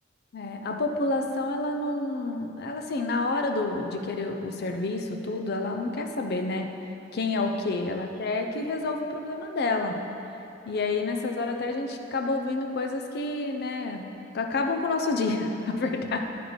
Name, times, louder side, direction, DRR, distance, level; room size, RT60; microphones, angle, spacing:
voice 1, 0.3-6.7 7.1-10.0 10.7-14.1 14.3-16.2, left 3 dB, 55° left, 4 dB, 0.6 m, -29 dB
9.9 x 4.1 x 4.6 m, 2.8 s
head